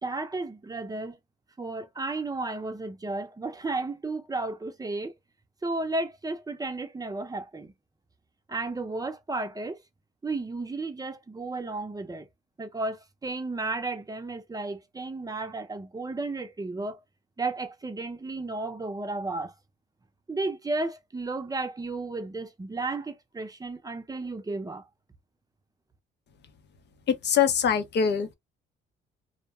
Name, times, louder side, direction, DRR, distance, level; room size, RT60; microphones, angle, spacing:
voice 1, 0.0-1.2 1.6-5.1 5.6-7.7 8.5-9.8 10.2-12.3 12.6-17.0 17.4-19.5 20.3-24.8, right 3 dB, 20° right, 0.6 m, -33 dB
voice 2, 27.1-28.3, left 7 dB, 60° left, 0.7 m, -23 dB
2.4 x 2.1 x 2.9 m
cardioid pair, 90°, 20 cm